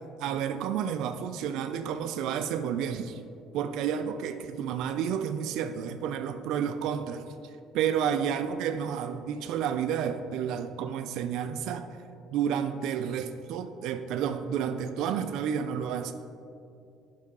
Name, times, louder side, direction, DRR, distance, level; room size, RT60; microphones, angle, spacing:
voice 1, 0.2-3.2 3.5-7.3 7.7-11.9 12.3-16.1, right 8 dB, 60° right, 9 dB, 0.3 m, -30 dB
10.5 x 5.5 x 3.6 m, 2.6 s
cardioid pair, 175°, 0 cm